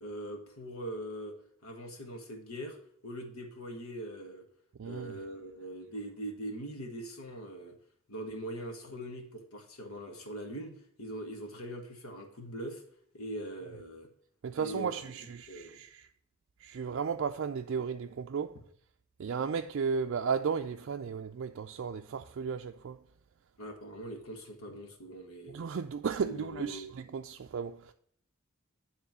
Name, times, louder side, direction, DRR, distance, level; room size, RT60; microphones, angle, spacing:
voice 1, 0.0-1.4 1.6-2.8 3.0-4.4 4.8-7.8 8.1-10.7 11.0-12.8 13.1-14.1 14.5-15.0 15.5-15.8 23.6-25.6 26.3-26.9, right 1 dB, 80° left, 1.6 m, -42 dB
voice 2, 4.8-5.2 14.4-16.1 16.6-18.6 19.2-23.0 25.5-27.9, right 6 dB, 60° right, 0.4 m, -34 dB
9.5 x 3.7 x 6.0 m
head